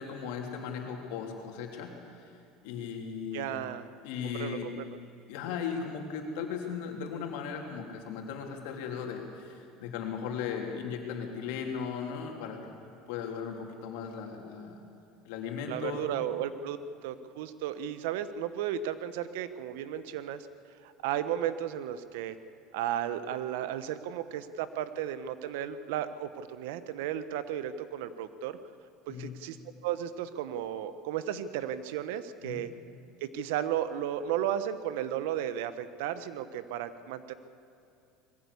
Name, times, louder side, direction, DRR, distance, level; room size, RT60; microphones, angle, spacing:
voice 1, 0.0-1.9 2.2-2.3 2.6-3.6 4.0-4.7 5.3-12.7 13.1-14.8 15.3-16.2 29.1-29.3 32.4-32.6, left 6 dB, 80° left, 2 dB, 3.3 m, -37 dB
voice 2, 3.3-3.9 4.2-5.0 15.7-16.8 17.0-20.5 20.8-22.4 22.7-28.6 29.1-29.6 29.8-32.7 33.2-37.3, right 10 dB, 85° right, 13 dB, 1.0 m, -34 dB
20.5 x 16.0 x 8.4 m, 2.6 s
cardioid pair, 140°, 0 cm